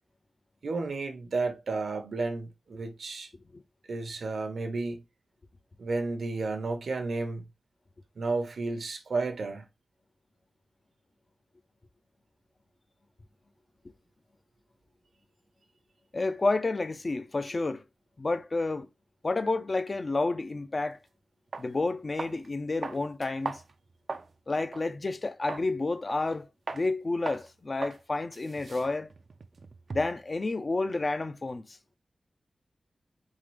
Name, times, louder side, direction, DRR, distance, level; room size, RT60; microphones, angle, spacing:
voice 1, 0.6-3.3 3.9-5.0 5.8-7.4 8.2-9.6, right 3 dB, 80° right, 0.9 m, -32 dB
voice 2, 16.1-17.8 18.2-18.9 19.2-21.0 21.6-23.6 24.5-26.5 26.7-29.1 29.9-31.8, left 3 dB, 40° left, 0.4 m, -30 dB
sound 1, 21.0-21.1 21.5-21.7 22.2-22.5 22.8-24.3 24.7-24.9 25.5-25.7 26.1-26.4 26.7-26.9 27.3-27.5 27.8-28.0 28.3-30.2, right 4 dB, 60° right, 0.4 m, -39 dB
3.8 x 3.7 x 3.2 m
wide cardioid pair, 110°, 0 cm